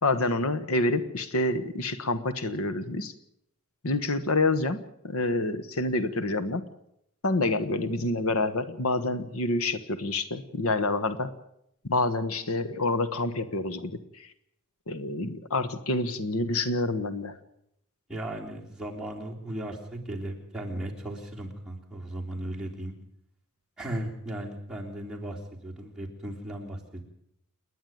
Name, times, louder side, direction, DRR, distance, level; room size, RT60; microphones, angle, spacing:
voice 1, 0.0-3.1 3.8-6.6 7.2-11.3 11.8-14.3 14.9-17.4, left 2 dB, 70° left, 12 dB, 1.3 m, -28 dB
voice 2, 18.1-22.9 23.8-27.0, right 1 dB, 5° right, -3 dB, 3.4 m, -36 dB
29.0 x 10.0 x 9.2 m, 0.76 s
head